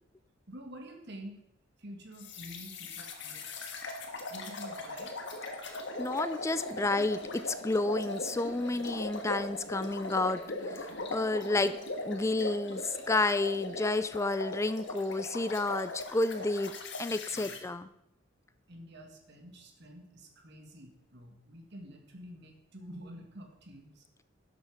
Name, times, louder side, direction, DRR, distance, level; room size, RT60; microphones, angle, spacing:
voice 1, 0.5-1.4 1.8-3.8 4.3-5.1 17.3-17.6 18.7-24.1, equal, 60° right, 3 dB, 2.0 m, -48 dB
sound 1, 2.2-17.6, left 2 dB, 65° left, 1.6 m, -39 dB
voice 2, 5.6-11.7 12.0-17.9, left 2 dB, 15° left, 13 dB, 0.4 m, -31 dB
12.0 x 7.5 x 5.0 m, 0.82 s
head